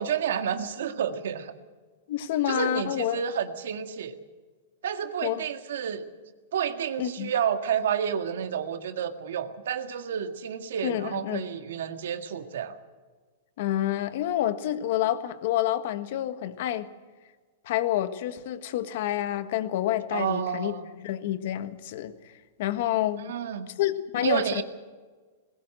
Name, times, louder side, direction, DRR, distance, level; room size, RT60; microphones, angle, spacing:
voice 1, 0.0-1.5 2.5-4.2 4.8-6.0 6.5-12.8 20.1-20.9 23.2-23.7 24.2-24.6, right 8 dB, 75° right, 8 dB, 1.8 m, -30 dB
voice 2, 2.1-3.2 5.2-5.4 7.0-7.3 10.8-11.5 13.6-16.9 17.6-22.1 22.6-23.3 23.8-24.6, left 12 dB, 55° left, 11 dB, 1.5 m, -28 dB
20.5 x 17.0 x 7.8 m, 1.4 s
hypercardioid pair, 150°, 0 cm